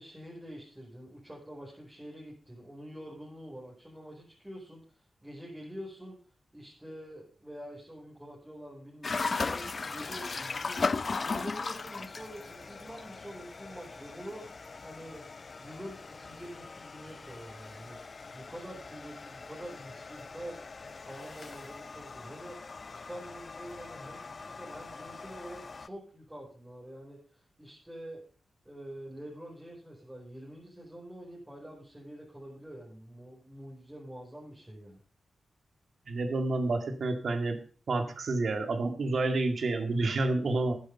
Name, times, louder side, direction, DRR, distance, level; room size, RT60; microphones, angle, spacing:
voice 1, 0.0-6.2 6.5-10.9 11.2-14.4 14.8-15.2 15.6-18.0 18.3-20.6 20.9-22.6 22.9-28.2 28.6-35.0, equal, 10° right, -4 dB, 5.0 m, -46 dB
sound 1, 9.0-25.9, left 4 dB, 50° left, 0.5 m, -38 dB
voice 2, 36.1-37.6 37.9-40.7, right 2 dB, 65° right, 8 dB, 2.0 m, -29 dB
10.5 x 9.8 x 5.4 m, 0.40 s
cardioid pair, 65°, 0 cm